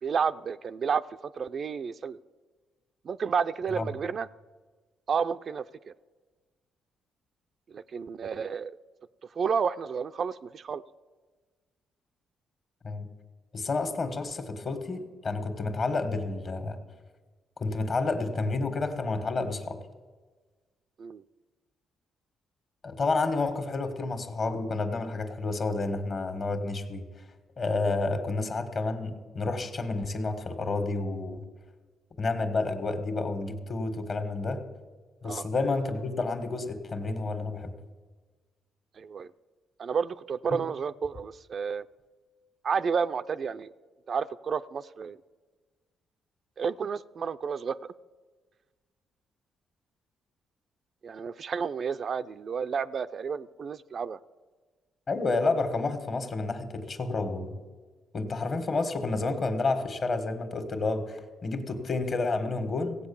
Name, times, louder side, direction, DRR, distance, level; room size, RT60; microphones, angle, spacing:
voice 1, 0.0-2.2 3.0-4.3 5.1-5.6 7.7-8.8 9.4-10.8 21.0-21.2 35.2-35.5 39.0-39.3 39.8-41.9 42.6-43.7 44.1-45.2 46.6-47.9 51.0-54.2, right 6 dB, 50° right, 12 dB, 0.4 m, -31 dB
voice 2, 13.5-16.8 17.6-19.8 22.8-27.1 27.6-31.5 32.2-34.6 35.2-37.7 40.5-40.6 55.1-57.6 58.1-63.0, left 3 dB, 45° left, 9 dB, 1.7 m, -30 dB
16.0 x 8.1 x 7.1 m, 1.4 s
cardioid pair, 90°, 0 cm